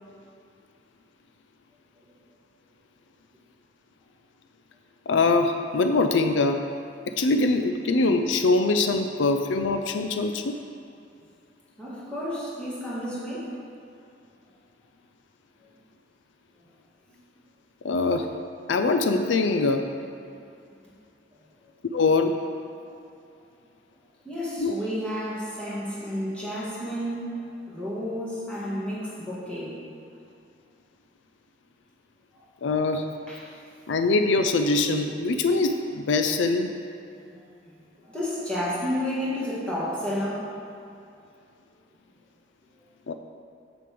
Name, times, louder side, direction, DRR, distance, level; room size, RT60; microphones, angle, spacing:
voice 1, 5.1-6.7 7.1-10.6 17.8-18.3 18.7-19.9 21.9-22.4 24.6-24.7 32.6-33.1 33.9-36.7 43.1-43.2, left 3 dB, 85° left, 6 dB, 0.4 m, -23 dB
voice 2, 11.8-13.7 22.8-22.9 24.2-29.8 32.3-32.4 33.3-33.6 37.2-37.5 38.0-40.6, equal, 5° left, -9 dB, 2.0 m, -31 dB
6.7 x 5.2 x 6.8 m, 2.6 s
head